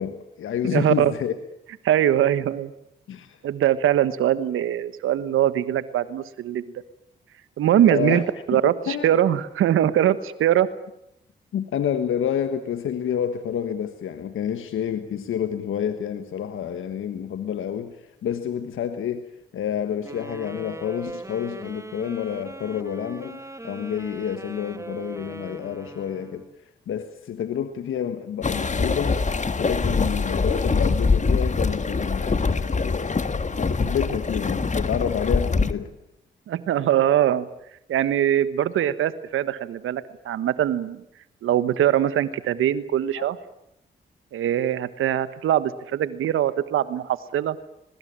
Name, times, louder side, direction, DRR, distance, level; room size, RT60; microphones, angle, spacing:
voice 1, 0.0-1.3 3.1-3.4 7.9-8.2 8.5-9.1 11.5-26.5 26.9-29.2 29.6-35.9 43.2-43.3, left 9 dB, 75° left, 9 dB, 1.5 m, -29 dB
voice 2, 0.7-1.1 1.8-2.7 3.4-6.7 7.6-8.2 8.5-10.7 36.5-37.5 37.9-41.0 41.4-43.4 44.3-47.6, right 11 dB, 80° right, 14 dB, 1.4 m, -22 dB
sound 1, 20.0-26.6, right 1 dB, 15° right, 2.3 m, -39 dB
sound 2, 28.4-35.7, left 4 dB, 35° left, 1.8 m, -24 dB
22.5 x 20.5 x 8.9 m, 0.80 s
supercardioid pair, 50°, 21 cm